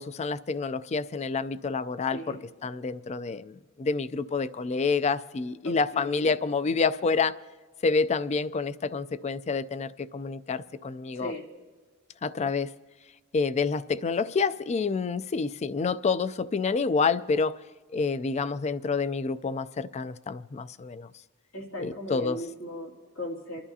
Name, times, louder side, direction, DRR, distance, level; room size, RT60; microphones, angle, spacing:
voice 1, 0.0-2.4 2.6-7.3 7.8-11.3 12.2-12.7 13.3-17.6 17.9-21.1 21.8-22.4, left 4 dB, 35° left, 0.4 m, -28 dB
voice 2, 2.1-2.4 5.6-6.3 11.1-11.5 21.5-23.7, left 1 dB, 80° left, 2.4 m, -38 dB
28.0 x 11.5 x 2.8 m
head